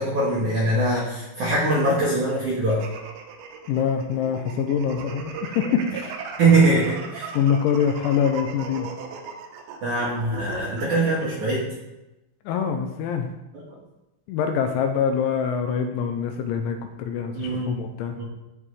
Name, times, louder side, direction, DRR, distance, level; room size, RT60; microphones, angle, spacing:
voice 1, 0.0-2.8 6.4-7.3 9.8-11.7 13.5-13.6 17.3-17.8 18.1-18.2, right 2 dB, 60° right, -6 dB, 2.1 m, -22 dB
sound 1, 2.7-11.3, right 5 dB, 85° right, 2.2 m, -37 dB
voice 2, 3.7-6.1 7.3-8.9 12.5-13.3 14.3-18.1, left 7 dB, 80° left, 5 dB, 2.9 m, -24 dB
15.0 x 5.5 x 3.3 m, 0.96 s
omnidirectional pair, 5.7 m